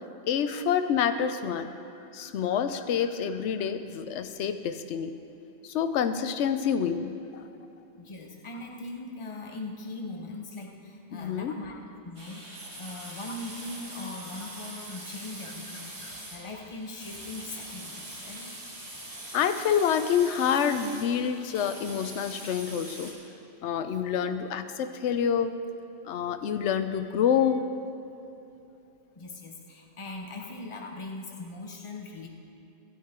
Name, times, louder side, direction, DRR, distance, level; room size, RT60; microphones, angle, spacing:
voice 1, 0.3-1.7 2.1-5.1 5.7-7.1 11.1-11.5 19.3-23.1 23.6-25.5 26.0-27.6, left 8 dB, 75° left, 9 dB, 0.9 m, -27 dB
voice 2, 8.0-12.5 12.8-18.5 29.2-32.3, left 2 dB, 30° left, 2 dB, 0.9 m, -40 dB
sound 1, 12.2-23.1, right 1 dB, 70° right, 2.4 m, -43 dB
13.0 x 9.0 x 4.4 m, 2.8 s
omnidirectional pair, 1.2 m